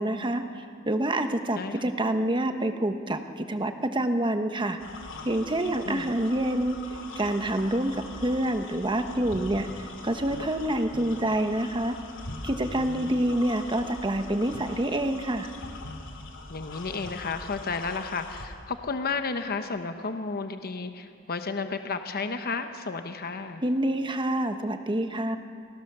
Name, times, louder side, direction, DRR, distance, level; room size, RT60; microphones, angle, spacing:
voice 1, 0.0-4.8 5.2-6.8 7.2-7.9 8.2-12.0 12.4-15.5 23.6-25.4, right 1 dB, 25° right, 7 dB, 1.1 m, -27 dB
sound 1, 4.8-18.5, left 2 dB, 60° left, 2.8 m, -42 dB
voice 2, 12.7-13.2 16.5-23.6, left 4 dB, 45° left, 8 dB, 1.0 m, -32 dB
29.0 x 18.0 x 6.9 m, 2.4 s
head